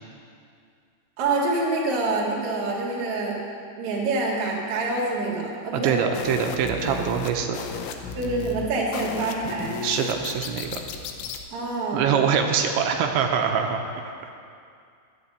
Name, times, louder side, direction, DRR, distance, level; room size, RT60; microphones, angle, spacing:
voice 1, 1.2-3.4 3.8-6.0 8.2-9.8 11.5-12.2, right 3 dB, 50° right, -3 dB, 1.9 m, -26 dB
voice 2, 5.7-7.6 9.8-10.8 11.9-13.8, right 7 dB, 85° right, 4 dB, 3.0 m, -24 dB
sound 1, 6.1-11.4, left 6 dB, 85° left, 3.1 m, -35 dB
11.5 x 7.7 x 8.0 m, 2.3 s
omnidirectional pair, 5.3 m